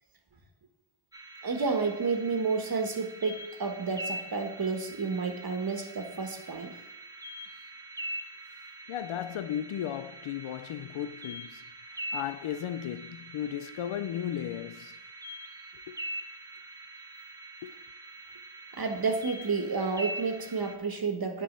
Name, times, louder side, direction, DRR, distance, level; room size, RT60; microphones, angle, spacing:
sound 1, 1.1-20.8, right 1 dB, 10° right, 0.9 m, -43 dB
voice 1, 1.4-6.8 18.8-21.4, right 4 dB, 45° right, 1.5 m, -30 dB
voice 2, 8.9-15.0 15.9-16.0 17.6-17.7, left 10 dB, 85° left, 0.6 m, -35 dB
8.3 x 4.6 x 7.3 m
cardioid pair, 65°, 48 cm